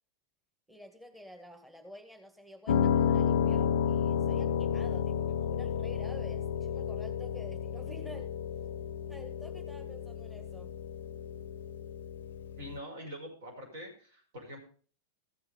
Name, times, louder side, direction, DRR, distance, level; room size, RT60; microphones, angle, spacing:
voice 1, 0.7-8.3 9.1-10.7, equal, 5° right, 4 dB, 1.8 m, -50 dB
Piano, 2.7-12.8, left 8 dB, 60° left, 0.5 m, -31 dB
voice 2, 12.6-14.6, equal, 55° right, 3 dB, 5.5 m, -44 dB
14.5 x 7.0 x 5.2 m, 0.42 s
figure-of-eight pair, 90°, 0 cm